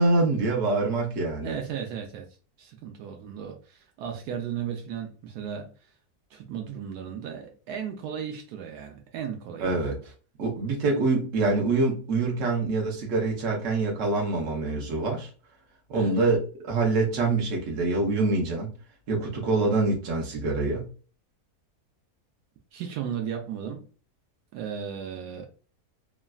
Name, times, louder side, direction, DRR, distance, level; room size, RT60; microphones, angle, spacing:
voice 1, 0.0-1.6 9.6-10.1 10.4-15.3 15.9-18.7 19.1-20.9, right 3 dB, 55° right, 1.2 m, -25 dB
voice 2, 1.4-2.2 2.6-5.7 6.3-9.8 15.9-16.1 22.7-23.9 24.5-25.5, right 8 dB, 80° right, 1.2 m, -35 dB
3.1 x 2.4 x 2.3 m
omnidirectional pair, 1.7 m